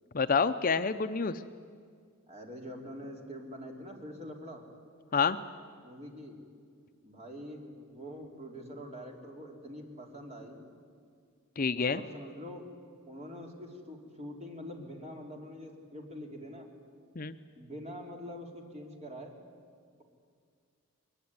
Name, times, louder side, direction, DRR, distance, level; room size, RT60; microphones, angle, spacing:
voice 1, 0.1-1.4 5.1-5.4 11.6-12.0 17.2-17.4, left 5 dB, 40° left, 10 dB, 0.6 m, -28 dB
voice 2, 2.3-4.6 5.8-6.4 7.0-10.6 11.7-12.7 13.1-16.7 17.5-19.4, equal, 30° right, 1 dB, 3.3 m, -44 dB
21.5 x 21.5 x 9.6 m, 2.1 s
head